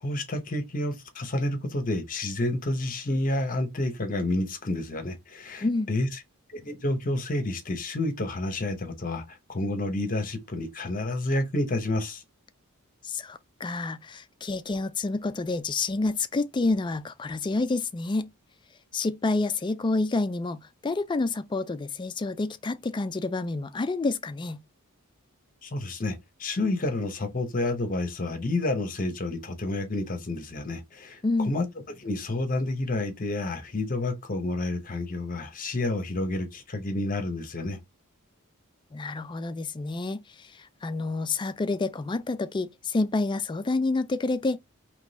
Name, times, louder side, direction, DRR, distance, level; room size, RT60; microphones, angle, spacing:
voice 1, 0.0-6.2 6.5-12.2 25.6-31.7 32.0-37.8, left 2 dB, 40° left, 0.9 m, -29 dB
voice 2, 13.0-18.3 18.9-24.6 31.2-31.5 38.9-44.6, left 3 dB, 20° left, 0.3 m, -28 dB
3.7 x 3.0 x 4.0 m
head